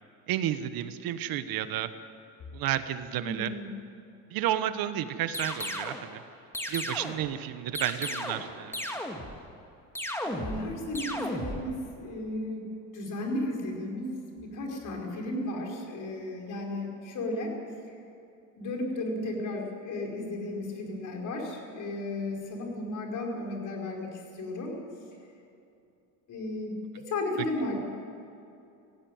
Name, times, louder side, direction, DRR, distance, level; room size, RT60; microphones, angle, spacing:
voice 1, 0.3-1.9 2.5-3.5 4.3-6.2 6.7-8.7, right 11 dB, 65° right, 11 dB, 1.3 m, -31 dB
voice 2, 3.2-3.9 10.2-14.1 14.4-17.6 17.9-18.0 18.6-24.8 26.3-27.8, left 1 dB, 55° left, 0 dB, 5.2 m, -34 dB
sound 1, 5.3-6.0 6.5-7.3 7.7-8.5 8.7-9.4 9.9-10.7 10.9-11.6, left 1 dB, 5° left, 2.2 m, -34 dB
18.5 x 16.0 x 9.4 m, 2.7 s
cardioid pair, 120°, 38 cm